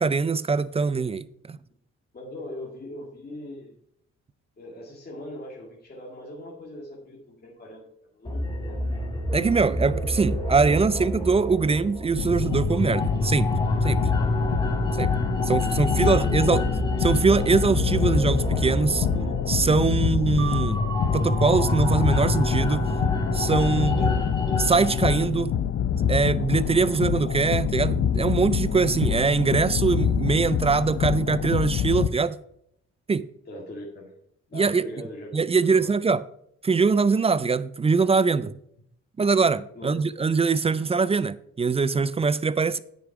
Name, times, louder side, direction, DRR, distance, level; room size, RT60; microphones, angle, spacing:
voice 1, 0.0-1.6 9.3-13.5 13.8-14.0 15.0-15.1 15.5-16.6 17.0-19.1 19.5-20.8 21.1-22.9 23.3-24.1 24.6-25.6 26.1-32.4 33.1-33.3 34.5-34.8 35.3-36.2 36.6-38.5 39.2-42.8, right 4 dB, 20° right, 0.4 m, -23 dB
voice 2, 2.1-3.8 4.6-7.9 8.1-8.8 14.2-14.3 16.0-16.5 23.7-24.1 33.5-34.2 34.5-35.4 35.8-35.9 39.8-40.1, left 1 dB, 30° left, 2.1 m, -40 dB
sound 1, 8.2-25.2, left 1 dB, 15° left, 2.1 m, -28 dB
sound 2, 12.2-32.1, left 9 dB, 50° left, 0.6 m, -26 dB
sound 3, 20.4-24.2, right 5 dB, 50° right, 1.3 m, -38 dB
9.1 x 6.2 x 4.8 m
cardioid pair, 90°, 30 cm